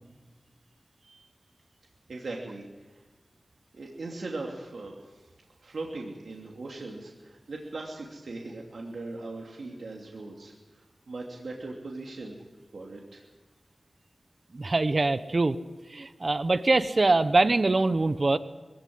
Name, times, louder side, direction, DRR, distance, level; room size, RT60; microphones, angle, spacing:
voice 1, 2.1-2.9 3.7-5.2 5.6-10.5 11.1-12.3 12.7-13.2, right 2 dB, 90° right, -1 dB, 2.9 m, -39 dB
voice 2, 14.5-15.6 15.9-18.4, right 2 dB, 50° right, 12 dB, 1.0 m, -23 dB
22.5 x 16.0 x 9.6 m, 1.2 s
wide cardioid pair, 70°, 0 cm